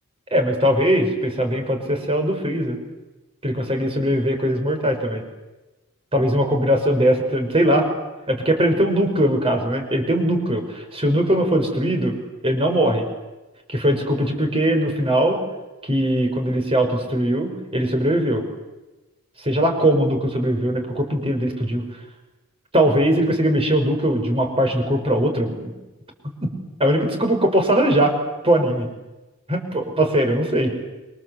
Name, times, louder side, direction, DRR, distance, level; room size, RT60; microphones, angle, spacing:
voice 1, 0.3-2.8 3.4-5.2 6.1-7.9 8.3-12.2 12.4-13.1 13.7-15.4 15.9-18.4 19.4-21.8 22.7-25.7 26.4-26.5 26.8-28.2 28.4-28.9 29.5-30.7, right 1 dB, 25° right, 4 dB, 5.7 m, -20 dB
28.5 x 24.5 x 8.1 m, 1.1 s
head